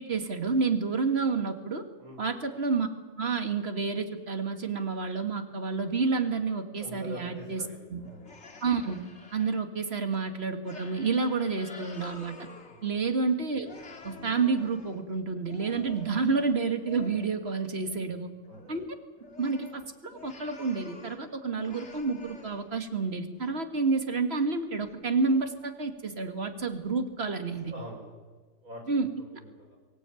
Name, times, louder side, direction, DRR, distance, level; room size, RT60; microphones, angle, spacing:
voice 1, 0.0-1.8 2.2-2.9 3.2-7.6 7.9-8.1 8.6-9.0 9.3-12.4 12.8-13.7 14.0-18.3 18.7-18.9 19.4-27.7 28.9-29.1, right 4 dB, 45° right, 7 dB, 2.1 m, -29 dB
voice 2, 6.8-8.3 12.7-12.8 18.0-18.7 27.7-28.2 28.6-28.8 29.2-29.8, right 1 dB, 80° right, 0 dB, 7.1 m, -45 dB
sound 1, 8.0-9.6 10.1-10.2 10.6-13.3 13.6-17.5 17.8-18.2 18.4-21.3 21.6-22.9 23.4-23.5 24.8-24.9 25.5-25.7 26.1-26.2 26.9-27.0 27.5-27.7, left 4 dB, 50° left, 2.6 m, -49 dB
24.0 x 16.5 x 9.1 m, 1.5 s
omnidirectional pair, 1.5 m